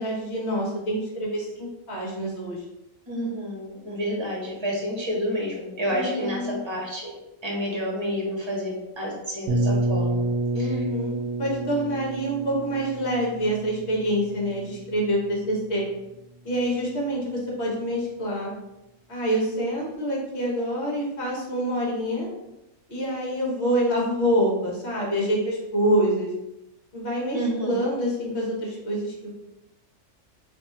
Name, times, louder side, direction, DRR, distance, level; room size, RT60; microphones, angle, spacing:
voice 1, 0.0-2.6 5.9-6.6 10.5-11.1 11.4-15.9 16.4-18.5 19.1-22.3 22.9-26.3 26.9-29.3, equal, 55° left, -3 dB, 1.5 m, -26 dB
voice 2, 3.1-7.2 7.4-10.2 10.5-10.7 27.3-27.9, equal, 20° right, -4 dB, 1.1 m, -29 dB
sound 1, 9.5-15.2, right 2 dB, 80° right, 1.0 m, -28 dB
3.2 x 2.7 x 4.2 m, 0.92 s
omnidirectional pair, 1.4 m